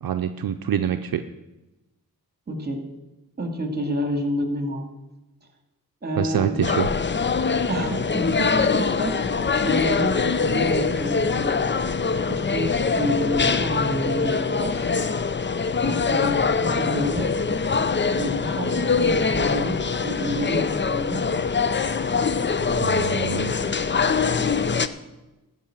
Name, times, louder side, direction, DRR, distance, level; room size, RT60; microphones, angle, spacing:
voice 1, 0.0-1.2 6.2-6.9 22.7-23.5, right 9 dB, 70° right, 7 dB, 0.6 m, -25 dB
voice 2, 2.5-2.8 3.4-4.9 6.0-6.6 7.7-9.2 9.6-11.6 12.3-14.9 15.8-17.3 18.2-21.4, equal, 25° right, 5 dB, 2.3 m, -29 dB
sound 1, 6.6-24.9, left 5 dB, 30° left, 0.6 m, -23 dB
13.0 x 5.5 x 8.8 m, 1.0 s
cardioid pair, 70°, 36 cm